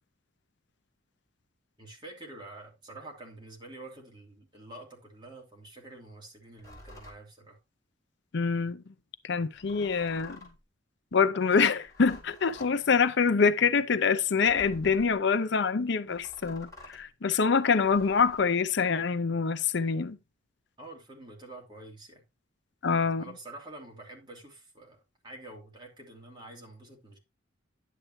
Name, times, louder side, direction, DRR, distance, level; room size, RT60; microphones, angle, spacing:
voice 1, 1.8-7.6 20.8-22.3 23.2-27.2, right 2 dB, 25° right, 2.8 m, -47 dB
sound 1, 6.6-7.2 9.5-10.6 11.7-12.8 14.4-15.2 16.1-17.1 17.8-18.4, left 1 dB, 15° left, 3.9 m, -50 dB
voice 2, 8.3-8.8 9.2-10.4 11.1-20.2 22.8-23.2, left 5 dB, 60° left, 0.6 m, -25 dB
10.5 x 7.6 x 3.1 m
head